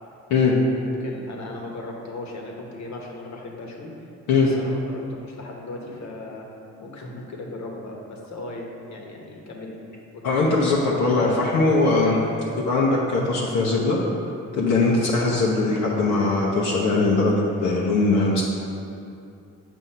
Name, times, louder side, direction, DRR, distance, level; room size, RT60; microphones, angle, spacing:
voice 1, 0.8-3.9 4.4-6.5 6.8-9.8 10.1-10.3 12.3-12.5 14.8-15.1, left 2 dB, 65° left, 0 dB, 1.1 m, -37 dB
voice 2, 10.2-12.2 12.6-14.0 14.5-18.4, left 3 dB, 85° left, -4 dB, 0.8 m, -20 dB
7.5 x 2.7 x 5.5 m, 2.6 s
cardioid pair, 90°, 30 cm